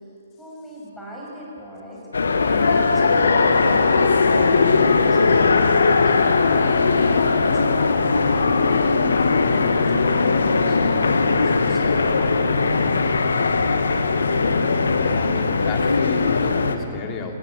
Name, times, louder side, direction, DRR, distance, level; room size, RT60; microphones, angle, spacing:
voice 1, 0.4-2.0 2.4-5.6 6.0-12.9, equal, ahead, -6 dB, 6.8 m, -38 dB
sound 1, 2.1-16.7, left 4 dB, 70° left, 1.4 m, -19 dB
voice 2, 15.0-17.4, left 5 dB, 25° left, 2 dB, 2.5 m, -33 dB
20.0 x 18.0 x 8.6 m, 2.8 s
figure-of-eight pair, 125°, 0 cm